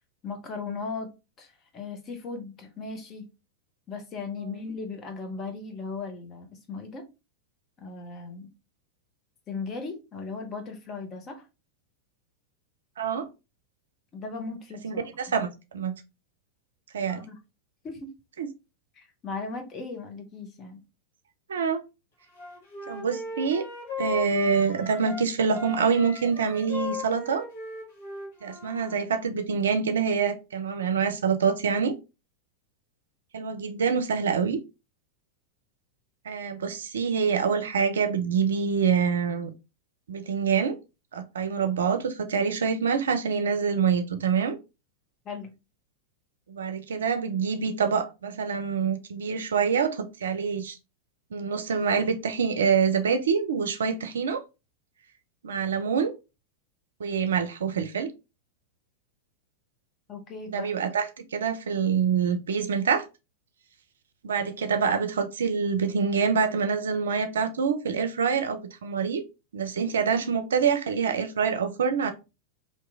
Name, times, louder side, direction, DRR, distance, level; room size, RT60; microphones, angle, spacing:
voice 1, 0.2-1.1 1.4-3.3 3.9-7.0 7.8-8.5 9.5-11.5 14.1-15.0 17.1-17.3 17.8-18.1 18.9-20.8 45.2-45.5 60.1-60.7, left 4 dB, 30° left, 0.9 m, -37 dB
voice 2, 13.0-13.3 14.8-15.9 16.9-17.2 18.4-18.5 21.5-21.8 22.9-23.7 24.0-27.4 28.4-31.9 33.3-34.6 36.3-39.5 40.1-40.8 41.1-44.6 46.5-50.8 51.3-54.4 55.4-56.1 57.0-58.1 60.5-63.0 64.2-69.2 69.5-72.1, right 6 dB, 65° right, 0.5 m, -26 dB
Wind instrument woodwind instrument, 22.4-25.3 25.5-29.0, left 3 dB, 50° left, 1.2 m, -37 dB
2.9 x 2.5 x 3.5 m
figure-of-eight pair, 90°, 0 cm